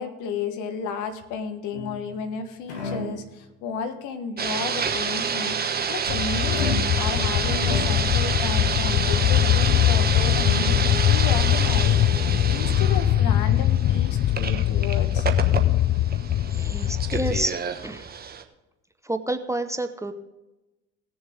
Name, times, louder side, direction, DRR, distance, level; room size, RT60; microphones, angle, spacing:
voice 1, 0.0-5.6 5.9-15.3, left 5 dB, 60° left, 8 dB, 1.5 m, -33 dB
sound 1, 1.7-2.3 2.7-3.3 6.5-7.1 7.5-8.2, left 2 dB, 80° left, 2.5 m, -33 dB
sound 2, 4.4-18.4, right 6 dB, 25° right, 1.2 m, -29 dB
sound 3, 6.1-17.5, left 12 dB, 35° left, 0.5 m, -22 dB
voice 2, 16.5-17.6 17.8-18.1 19.0-20.1, right 1 dB, 10° right, 8 dB, 0.9 m, -29 dB
18.0 x 7.2 x 3.7 m, 1.0 s
hypercardioid pair, 60°, 34 cm